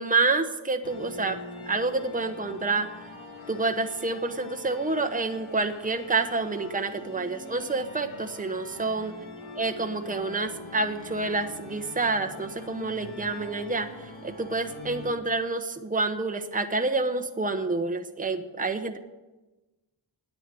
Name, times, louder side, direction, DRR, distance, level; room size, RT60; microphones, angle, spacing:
voice 1, 0.0-1.4 1.6-2.9 3.5-9.1 9.6-13.9 14.2-19.0, right 3 dB, 15° right, 6 dB, 1.0 m, -28 dB
sound 1, 0.8-15.1, left 2 dB, 85° left, 1.6 m, -43 dB
10.5 x 8.3 x 9.1 m, 1.1 s
wide cardioid pair, 50°, 47 cm